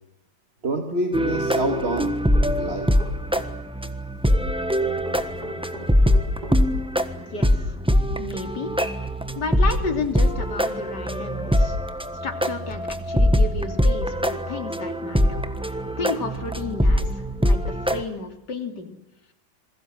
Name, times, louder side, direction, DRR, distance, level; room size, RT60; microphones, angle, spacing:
voice 1, 0.6-2.2 2.6-3.1, right 2 dB, 35° right, 4 dB, 2.6 m, -27 dB
sound 1, 1.1-18.0, equal, 5° right, 1.1 m, -23 dB
sound 2, 2.0-3.4 5.0-6.6, left 1 dB, 60° right, 8.2 m, -39 dB
voice 2, 7.2-7.8 8.2-8.8 9.4-11.8 12.2-15.4 16.0-19.0, left 4 dB, 70° left, 6 dB, 3.5 m, -32 dB
27.5 x 21.5 x 7.7 m, 0.90 s
omnidirectional pair, 1.9 m